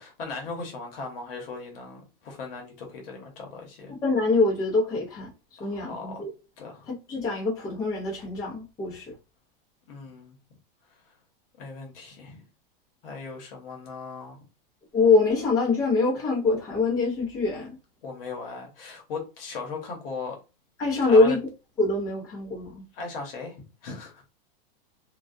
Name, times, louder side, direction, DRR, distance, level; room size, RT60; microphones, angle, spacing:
voice 1, 0.0-3.9 5.6-6.2 6.6-6.9 9.9-10.4 11.6-12.4 13.0-14.4 18.0-20.4 21.0-21.4 22.9-24.2, left 4 dB, 70° left, 0.9 m, -38 dB
voice 2, 3.9-5.3 5.6-6.3 6.9-9.1 14.9-17.7 20.8-21.4 21.8-22.8, left 3 dB, 10° left, 0.6 m, -24 dB
2.2 x 2.2 x 2.5 m
supercardioid pair, 175°, 29 cm